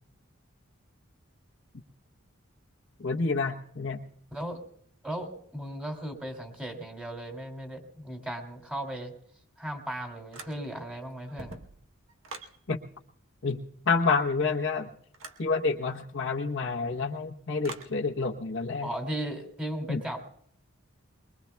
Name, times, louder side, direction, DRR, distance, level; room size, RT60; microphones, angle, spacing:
voice 1, 3.0-4.0 12.7-12.8 13.4-14.9 15.4-18.9 19.9-20.0, left 4 dB, 65° left, 2 dB, 1.0 m, -28 dB
voice 2, 4.3-4.6 5.0-9.1 9.6-11.6 18.8-20.2, right 1 dB, 5° right, 2 dB, 2.4 m, -36 dB
sound 1, 10.3-10.9 11.2-12.6 15.1-15.5 17.6-18.0, right 3 dB, 75° right, 1.1 m, -44 dB
23.0 x 22.0 x 2.3 m, 0.64 s
head